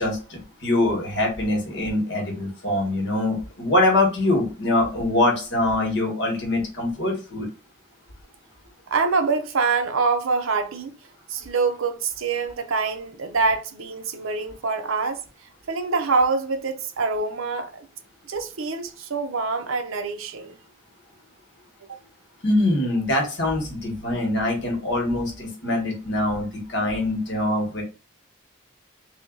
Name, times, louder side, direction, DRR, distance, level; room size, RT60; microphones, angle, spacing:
voice 1, 0.0-7.5 22.4-27.8, left 1 dB, 55° left, 1.4 m, -23 dB
voice 2, 8.9-11.0 11.3-15.2 15.7-17.9 18.3-20.6 21.9-22.0, right 4 dB, 80° right, 0.6 m, -25 dB
3.5 x 2.7 x 3.8 m
head